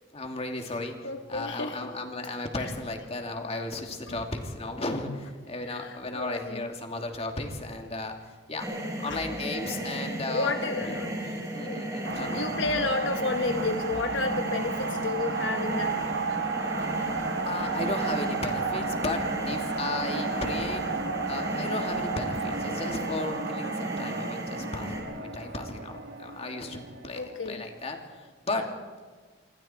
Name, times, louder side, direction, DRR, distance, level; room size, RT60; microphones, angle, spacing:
voice 1, 0.1-1.0 1.3-8.7 9.0-11.1 11.5-12.4 17.0-17.1 17.4-20.9 21.3-28.7, left 2 dB, 35° left, 3 dB, 2.7 m, -35 dB
voice 2, 1.0-1.9 2.6-2.7 4.1-4.2 5.6-6.6 9.1-9.2 9.8-10.0 10.2-11.2 11.6-16.0 23.6-24.0 27.1-27.6, left 3 dB, 70° left, 6 dB, 1.1 m, -32 dB
sound 1, 8.6-25.0, right 1 dB, 20° right, 5.5 m, -35 dB
sound 2, 12.0-27.9, right 4 dB, 85° right, 1.6 m, -33 dB
27.5 x 24.0 x 4.5 m, 1.5 s
head